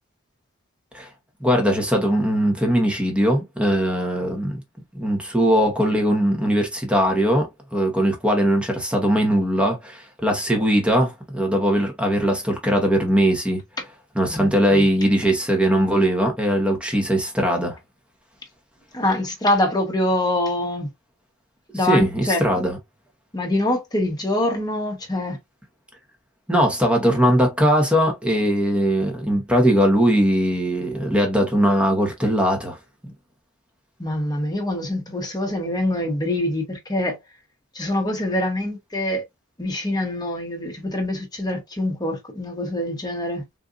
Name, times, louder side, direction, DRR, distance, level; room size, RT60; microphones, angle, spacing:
voice 1, 1.4-4.6 4.9-13.6 14.1-17.8 21.9-22.8 26.5-32.8 33.0-33.1, equal, 5° right, 1.0 m, -20 dB
voice 2, 14.3-14.8 18.9-20.9 21.7-22.6 23.3-25.4 34.0-37.2 37.7-39.2 39.6-43.5, left 1 dB, 20° left, 1.1 m, -24 dB
3.8 x 2.6 x 2.3 m
head